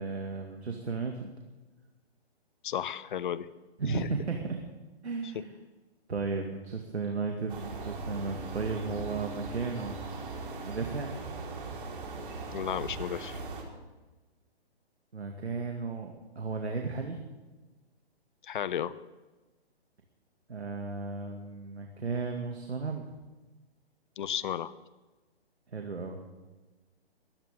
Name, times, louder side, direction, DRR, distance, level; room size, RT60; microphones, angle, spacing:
voice 1, 0.0-1.3 3.8-4.6 5.0-5.5 6.1-10.0 10.6-11.1 15.1-17.2 20.5-23.0 25.7-26.2, right 4 dB, 80° right, 3 dB, 2.3 m, -34 dB
voice 2, 2.6-3.5 3.9-4.1 5.3-5.4 12.5-13.4 18.4-18.9 24.2-24.7, left 9 dB, 50° left, 17 dB, 0.8 m, -33 dB
sound 1, 7.5-13.6, right 3 dB, 50° right, 4.6 m, -39 dB
22.0 x 17.0 x 3.8 m, 1.2 s
figure-of-eight pair, 135°, 32 cm